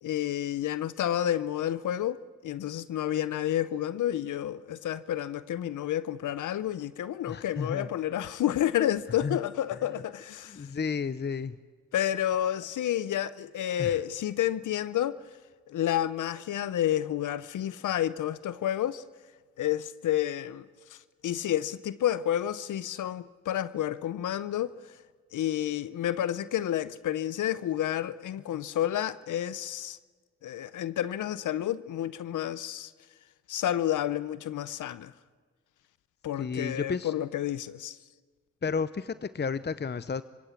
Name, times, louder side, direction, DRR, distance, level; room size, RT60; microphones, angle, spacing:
voice 1, 0.0-10.6 11.9-15.2 15.7-19.0 19.6-20.7 21.2-24.8 25.3-30.0 30.4-32.9 33.5-35.1 36.2-38.0, left 11 dB, 85° left, 0.7 m, -30 dB
voice 2, 7.3-7.9 9.2-9.4 10.5-11.6 13.8-14.0 36.4-37.1 38.6-40.2, left 5 dB, 35° left, 0.7 m, -32 dB
27.0 x 17.0 x 8.5 m
supercardioid pair, 45°, 30 cm